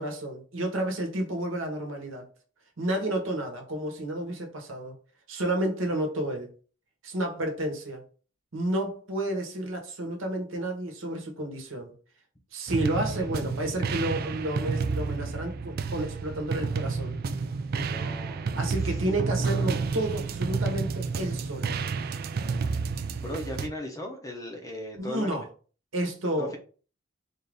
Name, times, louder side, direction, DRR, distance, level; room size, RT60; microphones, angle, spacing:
voice 1, 0.0-2.2 2.8-5.0 5.3-6.5 7.0-8.0 8.5-11.9 12.5-17.2 18.5-21.8 25.0-25.4 25.9-26.6, right 1 dB, 70° right, 1.1 m, -31 dB
sound 1, 12.7-23.7, right 4 dB, 45° right, 0.3 m, -30 dB
voice 2, 17.8-18.5 18.9-19.0 23.2-25.4 26.4-26.6, left 1 dB, 15° left, 0.6 m, -37 dB
4.0 x 2.5 x 3.4 m
head